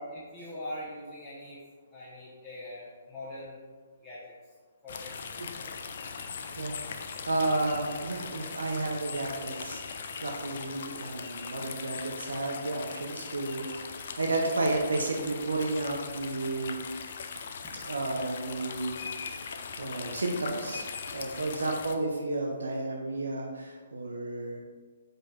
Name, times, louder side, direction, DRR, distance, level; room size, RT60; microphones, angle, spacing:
voice 1, 0.1-1.6 1.9-3.6 4.0-4.3 4.8-5.3 5.6-5.7, left 1 dB, 10° left, -12 dB, 1.1 m, -42 dB
sound 1, 4.9-22.0, left 5 dB, 55° left, 0.4 m, -40 dB
voice 2, 6.6-16.8 17.8-20.9 21.1-24.6, right 2 dB, 75° right, 0 dB, 0.6 m, -32 dB
5.1 x 4.4 x 2.4 m, 1.5 s
figure-of-eight pair, 130°, 0 cm